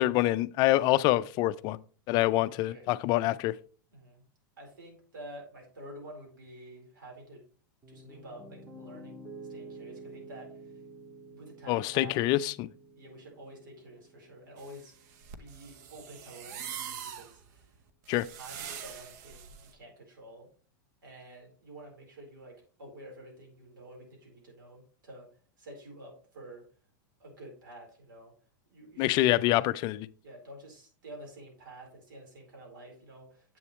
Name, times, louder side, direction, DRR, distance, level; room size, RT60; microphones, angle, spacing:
voice 1, 0.0-1.8 2.1-3.6 11.7-12.7 18.1-18.3 29.0-30.1, left 16 dB, 40° left, 0.4 m, -26 dB
voice 2, 2.3-2.9 3.9-4.2 4.6-7.4 7.9-10.6 11.3-12.3 13.0-14.9 15.3-17.7 18.4-20.5 21.0-25.3 25.6-26.6 27.2-28.3 28.7-29.3 30.2-33.6, right 1 dB, 85° right, 4.2 m, -49 dB
Piano, 7.8-15.9, right 2 dB, 25° right, 2.0 m, -50 dB
sound 1, 14.6-19.7, right 8 dB, 60° right, 0.9 m, -43 dB
7.8 x 6.9 x 3.1 m
hypercardioid pair, 115°, 11 cm